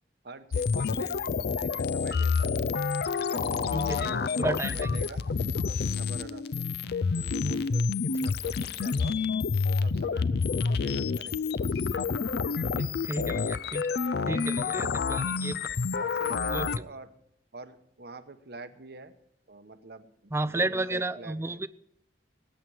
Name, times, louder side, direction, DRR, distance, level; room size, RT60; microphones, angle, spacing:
voice 1, 0.2-2.5 3.2-3.4 3.8-5.3 5.6-6.6 7.2-9.2 9.7-11.9 12.8-12.9 14.7-15.0 15.9-17.1 17.5-19.1 19.5-21.6, right 2 dB, 65° right, 10 dB, 1.0 m, -46 dB
sound 1, 0.5-16.8, left 5 dB, 65° left, 0.4 m, -28 dB
voice 2, 3.7-4.1 4.4-4.8 13.1-13.9 14.3-15.6 16.5-16.7 20.3-21.7, right 2 dB, 15° right, 15 dB, 0.4 m, -31 dB
19.5 x 9.0 x 4.8 m, 0.75 s
head